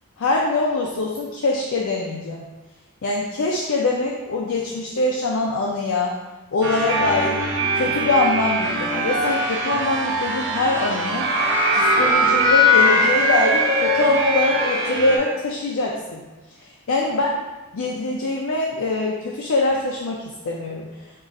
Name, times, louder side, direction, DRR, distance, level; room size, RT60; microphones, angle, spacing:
voice 1, 0.2-2.4 3.0-6.2 6.5-7.4 7.7-11.3 11.7-16.2 16.6-17.4 17.7-20.9, left 2 dB, 65° left, -2 dB, 0.5 m, -23 dB
sound 1, 6.6-15.2, equal, 55° right, 0.7 m, -20 dB
3.7 x 2.4 x 4.0 m, 1.2 s
head